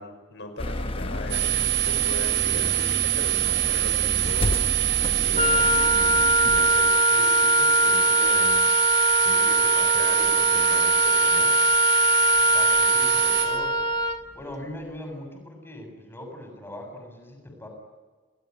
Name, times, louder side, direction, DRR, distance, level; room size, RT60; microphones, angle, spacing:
voice 1, 0.0-8.7 9.2-11.5, left 2 dB, 70° left, 5 dB, 5.9 m, -38 dB
sound 1, 0.6-7.0, left 1 dB, 30° left, 1.0 m, -31 dB
sound 2, 1.3-13.4, right 16 dB, 75° right, 5.9 m, -24 dB
Wind instrument woodwind instrument, 5.4-14.2, left 1 dB, 35° right, 1.6 m, -22 dB
voice 2, 12.4-13.8 14.3-17.7, left 1 dB, 10° left, 4 dB, 7.3 m, -40 dB
30.0 x 20.0 x 9.6 m, 1.4 s
head